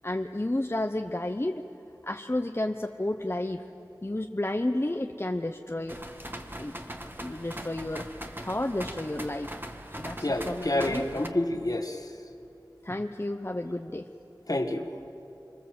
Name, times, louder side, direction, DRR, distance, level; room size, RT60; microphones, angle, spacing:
voice 1, 0.0-1.6 2.0-3.6 4.0-6.0 6.6-6.7 7.2-8.1 8.4-9.5 10.0-11.1 12.8-14.1, left 1 dB, 30° left, 5 dB, 0.8 m, -31 dB
sound 1, 5.9-11.3, equal, 25° right, 1.6 m, -40 dB
voice 2, 10.2-12.0 14.5-14.8, left 1 dB, 50° left, 5 dB, 1.8 m, -28 dB
25.5 x 25.5 x 7.8 m, 2.9 s
wide cardioid pair, 40°, 8 cm